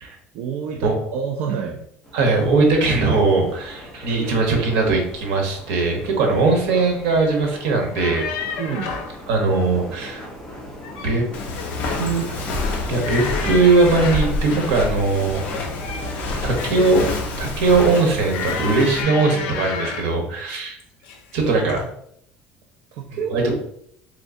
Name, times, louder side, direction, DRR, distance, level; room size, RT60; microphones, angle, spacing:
voice 1, 0.3-1.9 8.6-8.9 21.5-21.6 22.9-23.6, right 6 dB, 55° right, 2 dB, 0.3 m, -28 dB
sound 1, 2.0-17.1, equal, 10° left, 0.8 m, -39 dB
voice 2, 2.1-8.2 9.3-10.2 11.0-11.2 11.8-12.5 12.9-15.4 16.4-17.0 17.4-20.8 21.3-21.8 23.3-23.5, right 3 dB, 75° right, 2 dB, 1.0 m, -20 dB
sound 2, 8.0-9.2 10.6-11.2 11.6-12.1 13.0-14.4 15.4-17.1 18.3-20.2 21.0-21.3 21.7-21.9, left 6 dB, 80° left, 0.5 m, -31 dB
Walk footsteps, 11.3-19.0, left 2 dB, 40° left, 0.6 m, -28 dB
3.6 x 3.1 x 2.6 m, 0.70 s
cardioid pair, 180°, 4 cm